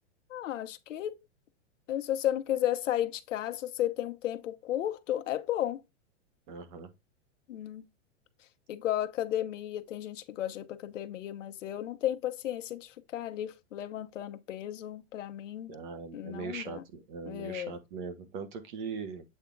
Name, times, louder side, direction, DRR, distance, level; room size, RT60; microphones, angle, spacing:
voice 1, 0.3-1.2 1.9-5.8 7.5-7.8 8.7-15.7 16.1-16.8 17.3-17.8, left 12 dB, 85° left, 1.0 m, -33 dB
voice 2, 6.5-6.9 15.7-19.2, right 5 dB, 40° right, 1.3 m, -40 dB
8.3 x 3.5 x 3.8 m
supercardioid pair, 170°, 36 cm